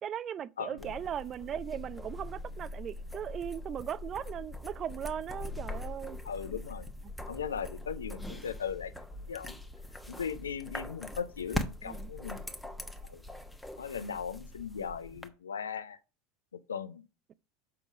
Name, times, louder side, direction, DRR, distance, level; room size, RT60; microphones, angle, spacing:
voice 1, 0.0-6.2 11.8-12.1, right 9 dB, 35° right, 0.5 m, -38 dB
voice 2, 0.6-1.0 6.2-6.9 7.3-8.9 9.3-9.6 10.1-12.4 13.0-13.2 13.8-16.0 16.5-17.0, left 7 dB, 80° left, 0.5 m, -38 dB
sound 1, 0.8-15.3, left 1 dB, 5° left, 1.1 m, -42 dB
6.8 x 5.3 x 6.0 m
hypercardioid pair, 80°, 0 cm